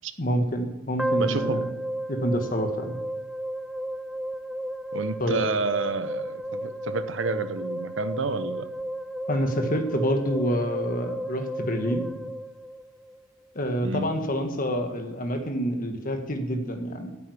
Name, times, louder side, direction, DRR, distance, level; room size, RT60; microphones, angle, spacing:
voice 1, 0.2-1.7 2.1-2.9 5.2-5.4 9.3-12.0 13.5-17.1, equal, 45° left, 6 dB, 1.4 m, -27 dB
sound 1, 1.0-13.2, right 1 dB, ahead, 0.4 m, -33 dB
voice 2, 1.2-1.6 4.9-8.7 13.8-14.1, right 3 dB, 70° right, 11 dB, 0.8 m, -29 dB
9.4 x 8.5 x 9.8 m, 1.1 s
head